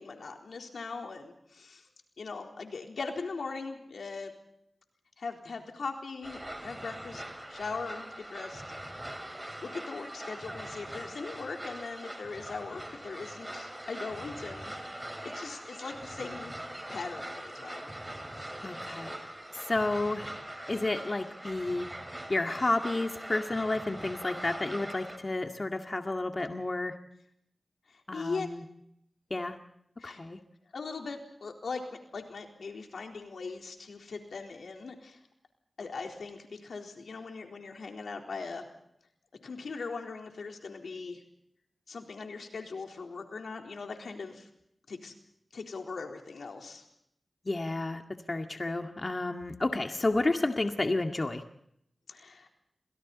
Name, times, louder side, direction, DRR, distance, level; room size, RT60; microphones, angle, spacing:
voice 1, 0.0-1.8 2.2-4.3 5.2-7.2 7.5-8.6 9.0-9.2 9.6-16.5 16.9-17.9 28.1-28.5 30.0-30.2 30.7-31.8 32.1-35.2 35.8-38.7 39.4-41.2 41.9-44.5 44.9-45.1 45.5-46.9 52.1-52.5, left 4 dB, 90° left, 3 dB, 3.9 m, -40 dB
sound 1, 6.2-25.2, right 1 dB, 15° right, 5.6 m, -42 dB
voice 2, 18.6-19.1 19.6-20.3 20.7-21.9 22.3-27.0 28.1-28.6 29.3-29.6 30.0-30.4 47.5-48.0 48.3-51.4, left 2 dB, 40° left, 4 dB, 2.0 m, -31 dB
29.5 x 26.0 x 4.2 m, 0.74 s
cardioid pair, 55°, 0 cm